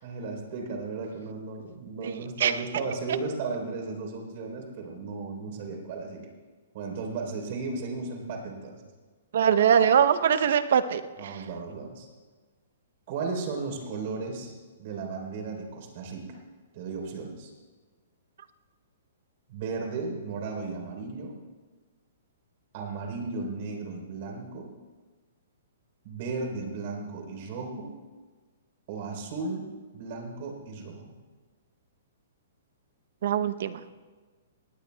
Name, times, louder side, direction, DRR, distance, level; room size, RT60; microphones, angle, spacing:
voice 1, 0.0-6.2 6.7-8.8 11.2-12.1 13.1-14.5 14.8-16.4 16.7-17.5 19.5-21.4 22.7-24.7 26.0-27.9 28.9-31.1, right 4 dB, 50° right, 3 dB, 3.6 m, -35 dB
voice 2, 2.0-2.5 9.3-11.4 33.2-33.9, right 8 dB, 70° right, 11 dB, 0.7 m, -23 dB
19.0 x 17.0 x 2.3 m, 1.4 s
hypercardioid pair, 150°, 0 cm